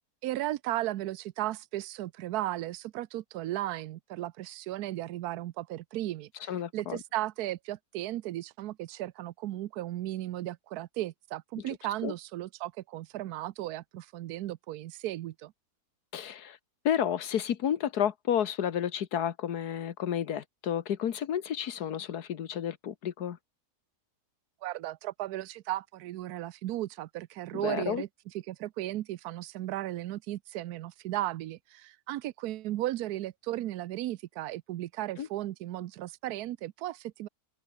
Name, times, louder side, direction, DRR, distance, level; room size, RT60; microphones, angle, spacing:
voice 1, 0.2-15.5 24.6-28.1 28.5-37.3, right 14 dB, 80° right, 1.2 m, -35 dB
voice 2, 6.5-7.0 12.0-12.1 16.1-16.6 16.8-23.4 27.5-28.0 35.2-35.3, left 9 dB, 80° left, 1.7 m, -31 dB
omnidirectional pair, 1.7 m